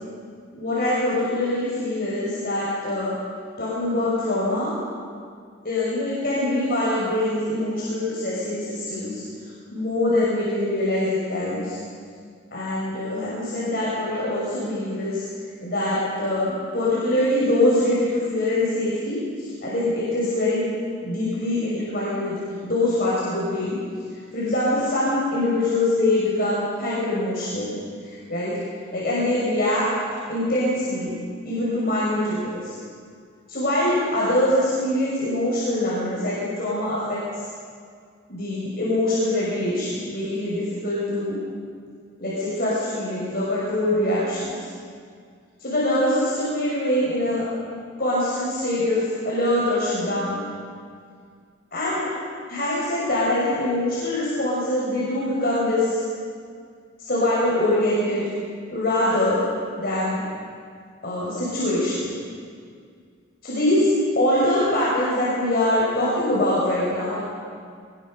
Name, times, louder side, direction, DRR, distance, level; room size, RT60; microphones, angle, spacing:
voice 1, 0.6-3.2 3.6-4.8 5.6-9.2 9.7-11.8 12.5-15.2 15.6-19.2 19.6-20.7 21.0-23.8 24.3-27.8 28.3-28.6 28.9-29.9 30.3-31.2 31.4-32.7 33.5-37.2 38.3-41.4 42.2-44.6 45.6-47.5 48.0-50.5 51.7-52.1 52.5-56.0 57.0-58.3 58.7-59.4 59.7-60.2 61.0-62.1 63.4-63.9 64.1-67.2, left 1 dB, 45° left, -8 dB, 6.2 m, -23 dB
23.5 x 21.5 x 6.6 m, 2.2 s
head